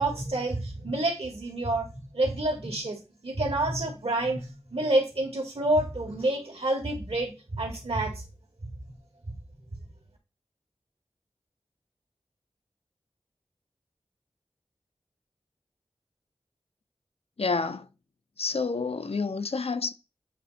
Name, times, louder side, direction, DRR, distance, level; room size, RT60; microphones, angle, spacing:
voice 1, 0.0-1.9 2.1-8.2 8.6-8.7, right 2 dB, 65° right, 2.2 m, -28 dB
voice 2, 17.4-17.9 18.4-19.9, left 4 dB, 65° left, 0.6 m, -29 dB
8.3 x 3.0 x 4.3 m
wide cardioid pair, 50°, 11 cm